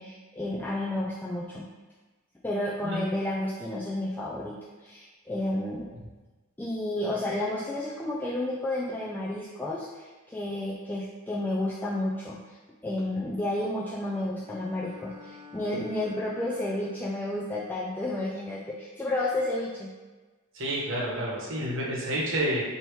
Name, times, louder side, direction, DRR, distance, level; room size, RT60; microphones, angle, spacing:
voice 1, 0.0-1.7 2.4-5.9 6.6-12.6 12.8-19.9, left 1 dB, 10° left, -6 dB, 0.3 m, -31 dB
Bowed string instrument, 14.3-17.5, left 5 dB, 15° right, 1.0 m, -50 dB
voice 2, 20.5-22.6, right 1 dB, 60° right, -4 dB, 1.0 m, -29 dB
4.6 x 2.8 x 3.1 m, 1.3 s
head